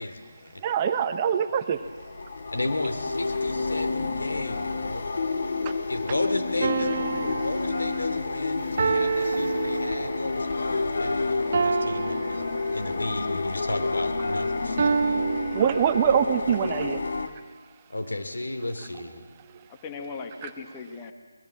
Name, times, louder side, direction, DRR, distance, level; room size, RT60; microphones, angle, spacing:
voice 1, 0.0-0.6 2.5-5.1 5.9-12.3 12.7-14.8 17.9-19.2, left 2 dB, 65° left, 7 dB, 3.1 m, -33 dB
voice 2, 0.6-1.8 15.5-17.0 20.4-20.5, right 8 dB, 20° right, 8 dB, 1.0 m, -23 dB
sound 1, 1.8-17.3, left 3 dB, 50° left, 1.7 m, -30 dB
voice 3, 6.6-7.1 19.7-21.1, left 5 dB, 20° left, 5 dB, 1.5 m, -39 dB
sound 2, 6.6-10.3 11.5-13.1 14.8-16.3, right 5 dB, 40° right, 1.3 m, -28 dB
23.0 x 21.5 x 7.5 m, 1.4 s
figure-of-eight pair, 155°, 0 cm